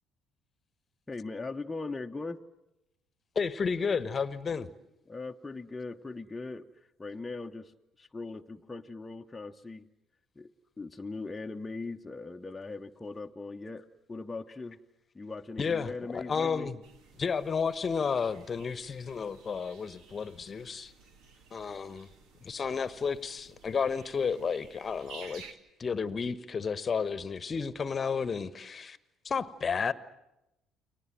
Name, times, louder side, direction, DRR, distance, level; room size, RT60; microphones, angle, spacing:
voice 1, 1.1-2.4 5.1-9.9 10.3-14.8 15.1-16.7 21.7-21.8, left 3 dB, 20° left, 1.0 m, -40 dB
voice 2, 3.3-4.7 15.6-16.8 17.2-20.9 21.5-22.1 22.4-25.4 25.8-29.0 29.2-29.9, left 5 dB, 35° left, 1.2 m, -32 dB
sound 1, 16.8-25.5, right 5 dB, 60° right, 2.1 m, -54 dB
29.5 x 23.0 x 7.7 m
figure-of-eight pair, 50°, 0 cm